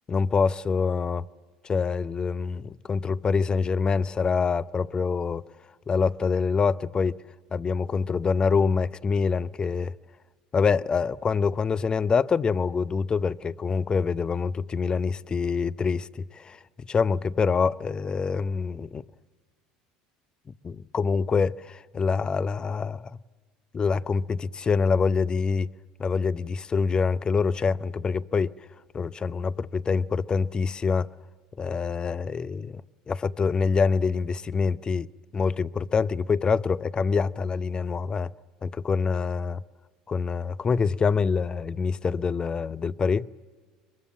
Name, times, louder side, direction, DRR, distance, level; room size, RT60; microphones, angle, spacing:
voice 1, 0.1-1.2 1.6-5.4 5.9-7.2 7.5-9.9 10.5-19.0 20.6-23.2 23.7-25.7 26.0-28.5 28.9-31.1 31.6-32.8 33.1-35.1 35.3-38.3 38.6-39.6 40.1-43.3, left 5 dB, 30° left, 0.6 m, -25 dB
23.0 x 22.0 x 7.5 m
hypercardioid pair, 80°, 3 cm